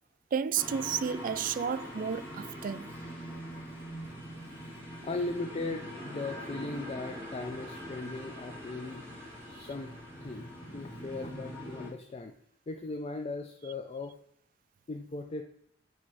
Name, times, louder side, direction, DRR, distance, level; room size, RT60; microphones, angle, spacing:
voice 1, 0.3-2.9, right 7 dB, 50° right, 0.3 m, -32 dB
sound 1, 0.5-11.9, equal, 15° right, 2.2 m, -43 dB
voice 2, 3.3-3.6 4.5-4.7 5.0-9.1 9.5-9.9 10.2-12.3 12.7-14.1 14.9-15.4, left 3 dB, 35° left, 0.4 m, -38 dB
8.5 x 3.1 x 4.7 m
head